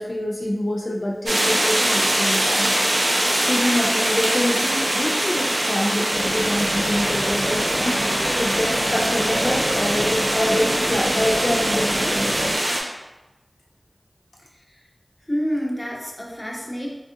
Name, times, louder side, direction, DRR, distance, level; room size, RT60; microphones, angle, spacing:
voice 1, 0.0-2.7 3.5-12.2, left 1 dB, 65° left, -3 dB, 0.4 m, -26 dB
sound 1, 1.3-12.8, right 1 dB, 90° right, 0.5 m, -22 dB
sound 2, 6.1-12.6, equal, 20° right, 0.6 m, -29 dB
voice 2, 14.4-14.9 15.2-16.9, equal, 20° left, -3 dB, 0.6 m, -29 dB
3.5 x 2.3 x 2.6 m, 1.0 s
wide cardioid pair, 55°, 0 cm